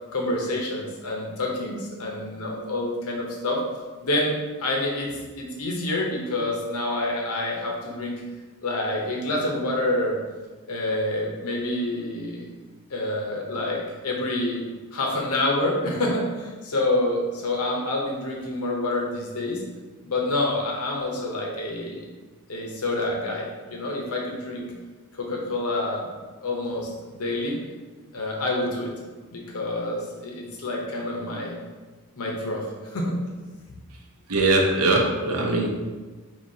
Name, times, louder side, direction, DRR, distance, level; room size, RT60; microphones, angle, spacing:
voice 1, 0.1-3.6 4.0-8.2 8.6-10.2 10.7-12.4 12.9-14.6 14.9-19.6 20.0-22.0 22.5-24.7 25.1-26.1 26.4-27.6 28.1-28.9 29.3-31.5 32.1-33.2, left 2 dB, 75° left, -1 dB, 0.8 m, -27 dB
voice 2, 34.3-35.7, right 2 dB, 90° right, 1 dB, 0.7 m, -21 dB
5.5 x 2.8 x 2.7 m, 1.3 s
head